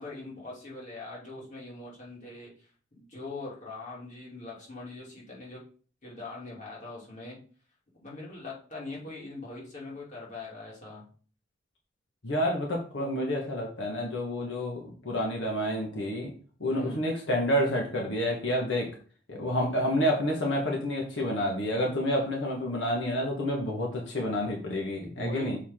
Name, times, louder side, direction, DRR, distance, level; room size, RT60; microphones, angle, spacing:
voice 1, 0.0-2.5 2.9-5.6 6.0-7.4 7.9-11.0 16.7-17.0 25.2-25.5, left 2 dB, 40° left, -4 dB, 2.7 m, -41 dB
voice 2, 12.2-16.3 16.6-18.9 19.4-25.6, equal, 75° left, -1 dB, 1.4 m, -29 dB
6.8 x 4.8 x 3.7 m, 0.42 s
head